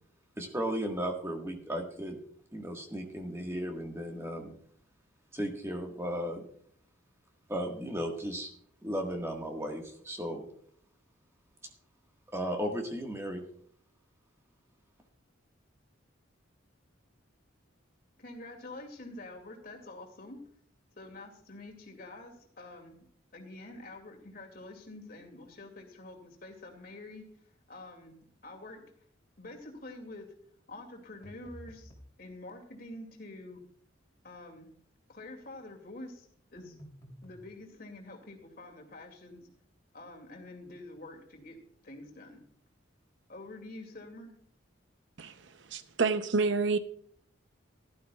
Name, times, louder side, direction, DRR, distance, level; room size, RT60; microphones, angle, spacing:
voice 1, 0.4-2.2 2.5-4.5 5.3-6.4 7.5-8.5 8.8-10.4 12.3-13.4, equal, 15° right, 1.6 m, -35 dB
voice 2, 18.2-20.4 21.0-23.0 23.3-27.3 27.7-28.2 28.4-28.8 29.4-30.3 30.7-31.9 32.2-33.6 34.2-34.7 35.1-36.8 37.2-39.4 39.9-41.6 41.8-42.4 43.3-44.3, left 2 dB, 45° left, 2.4 m, -47 dB
sound 1, 31.2-32.1 36.6-37.4, equal, 20° left, 3.1 m, -50 dB
voice 3, 45.2-46.8, right 4 dB, 65° right, 0.7 m, -29 dB
16.5 x 12.0 x 2.3 m
head